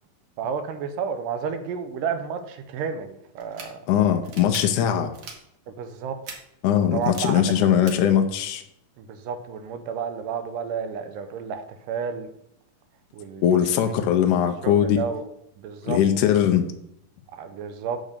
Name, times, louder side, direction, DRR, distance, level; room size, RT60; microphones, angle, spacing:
voice 1, 0.4-3.9 5.7-6.2 6.8-7.7 9.0-12.3 13.1-13.4 13.8-13.9 14.6-15.2 15.6-16.0 17.3-18.0, right 6 dB, 80° right, 8 dB, 2.3 m, -31 dB
sound 1, 3.4-3.7 4.2-4.6 5.1-5.4 6.2-6.4 7.0-7.2 7.9-8.0, right 5 dB, 60° right, 2.1 m, -39 dB
voice 2, 3.9-5.1 6.6-8.6 13.4-15.0 15.8-16.7, left 9 dB, 75° left, 5 dB, 1.9 m, -20 dB
8.8 x 3.9 x 6.6 m, 0.77 s
omnidirectional pair, 3.9 m